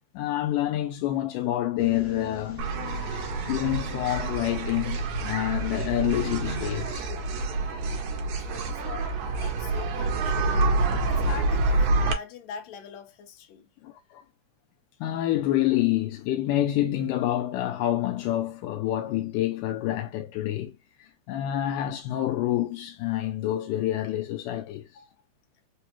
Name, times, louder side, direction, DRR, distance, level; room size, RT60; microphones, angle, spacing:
voice 1, 0.1-2.7 3.5-7.1 13.8-14.2 15.0-20.7 21.3-24.9, left 13 dB, 85° left, 2.1 m, -27 dB
sound 1, 1.8-6.9, left 1 dB, 35° left, 1.1 m, -39 dB
sound 2, 2.6-12.1, right 3 dB, 75° right, 1.9 m, -27 dB
voice 2, 8.4-9.1 9.4-10.5 11.1-13.7 25.0-25.2, left 7 dB, 70° left, 2.0 m, -42 dB
5.2 x 2.3 x 2.9 m
omnidirectional pair, 3.7 m